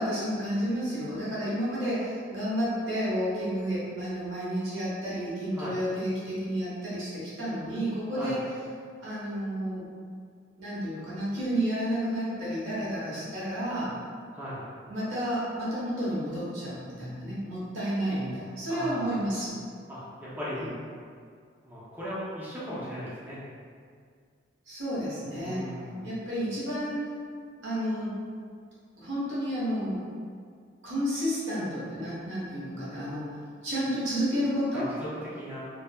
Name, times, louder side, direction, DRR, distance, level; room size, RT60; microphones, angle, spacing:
voice 1, 0.0-8.5 9.0-9.9 10.6-13.9 14.9-19.6 20.5-20.7 24.7-25.7 26.0-27.1 27.6-28.2 29.0-30.0 30.8-33.3 33.6-34.9, equal, 85° right, -9 dB, 1.0 m, -31 dB
voice 2, 18.7-19.1 19.9-20.6 21.6-23.4 25.3-26.1 34.7-35.1 35.3-35.7, equal, 10° right, -10 dB, 0.5 m, -38 dB
3.2 x 2.0 x 2.2 m, 2.1 s
head